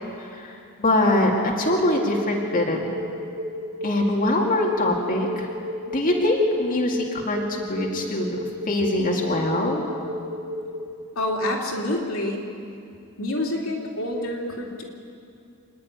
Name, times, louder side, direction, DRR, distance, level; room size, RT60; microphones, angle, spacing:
voice 1, 0.2-2.9 3.8-5.5 5.9-8.4 8.7-9.8, left 1 dB, 40° left, -2 dB, 2.3 m, -23 dB
sound 1, 1.7-10.8, left 1 dB, 45° right, 2.1 m, -32 dB
voice 2, 11.1-12.4 13.2-14.8, left 1 dB, 75° left, -1 dB, 3.0 m, -27 dB
27.5 x 10.0 x 9.8 m, 2.5 s
head